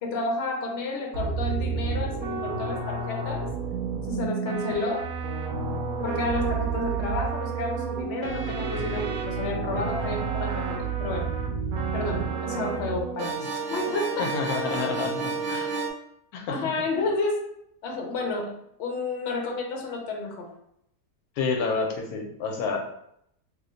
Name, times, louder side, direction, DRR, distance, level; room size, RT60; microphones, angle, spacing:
voice 1, 0.0-3.5 4.1-5.1 6.0-11.3 11.9-14.4 16.5-17.4 17.8-18.5 18.8-20.5, left 3 dB, 55° left, 0 dB, 0.8 m, -31 dB
sound 1, 1.1-15.9, right 5 dB, 65° right, 0.9 m, -30 dB
voice 2, 14.2-15.7 16.3-16.7 21.4-22.8, left 4 dB, 75° left, 1 dB, 1.0 m, -29 dB
2.9 x 2.1 x 3.8 m, 0.74 s
omnidirectional pair, 1.6 m